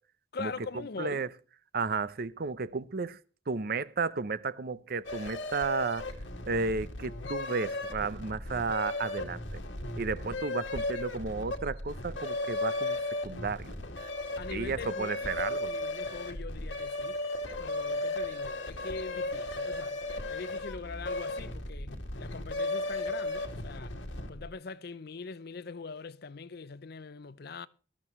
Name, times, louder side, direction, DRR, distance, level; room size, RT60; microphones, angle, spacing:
voice 1, 0.3-1.2 14.4-17.2 17.6-20.0 20.3-24.0 24.3-27.7, left 4 dB, 55° left, 0.6 m, -42 dB
voice 2, 1.0-1.3 1.7-3.2 3.5-6.1 6.5-9.4 10.0-13.8 14.5-15.7, right 4 dB, 50° right, 0.6 m, -33 dB
sound 1, 5.0-24.5, left 2 dB, 85° left, 2.2 m, -36 dB
19.5 x 13.0 x 3.1 m
head